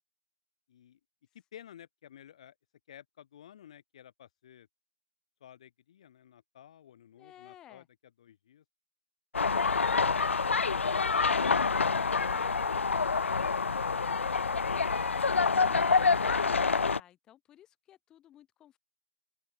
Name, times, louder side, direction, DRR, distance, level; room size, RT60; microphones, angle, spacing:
voice 1, 0.7-1.0 1.3-2.5 2.9-4.7 5.4-7.8 8.2-8.6, left 10 dB, 30° left, 6.4 m, -54 dB
voice 2, 7.2-7.9 9.8-10.0 11.0-11.2 15.6-18.8, left 12 dB, 10° left, 6.0 m, -56 dB
sound 1, 9.3-17.0, left 5 dB, 65° left, 0.3 m, -27 dB
open air
figure-of-eight pair, 160°, 7 cm